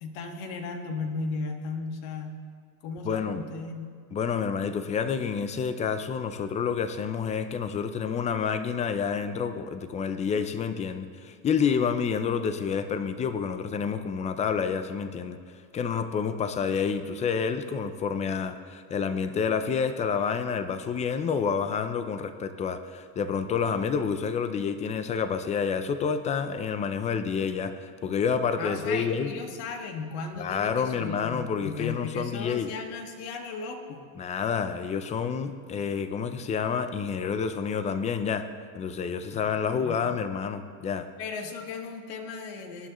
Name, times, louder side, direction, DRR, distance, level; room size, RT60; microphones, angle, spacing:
voice 1, 0.0-2.4 2.8-3.9 28.6-34.0 39.3-39.4 39.7-40.2 41.2-42.9, left 4 dB, 60° left, 4 dB, 1.8 m, -36 dB
voice 2, 3.1-3.5 4.1-15.4 15.7-29.3 30.4-32.7 34.2-38.5 38.7-41.1, left 6 dB, 15° left, 10 dB, 0.4 m, -29 dB
19.0 x 10.0 x 3.1 m, 2.1 s
supercardioid pair, 140°, 46 cm